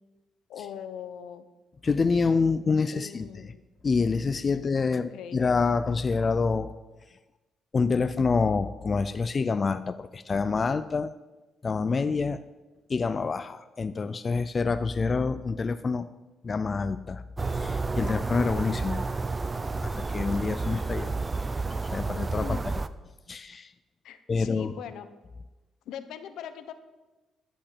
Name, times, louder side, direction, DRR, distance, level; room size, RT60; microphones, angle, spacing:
voice 1, 0.5-1.4 2.9-3.6 4.9-5.4 22.4-22.6 24.0-25.1 25.9-26.7, left 9 dB, 80° left, 10 dB, 1.0 m, -40 dB
voice 2, 1.8-3.3 3.8-6.7 7.7-11.1 11.6-12.4 12.9-16.1 16.4-17.2 17.5-19.0 19.8-21.1 21.9-22.6 23.3-23.7 24.3-24.7, left 4 dB, 35° left, 12 dB, 0.4 m, -27 dB
sound 1, 17.4-22.9, right 3 dB, 25° right, 0.6 m, -30 dB
12.0 x 5.4 x 8.3 m, 1.1 s
cardioid pair, 90°, 0 cm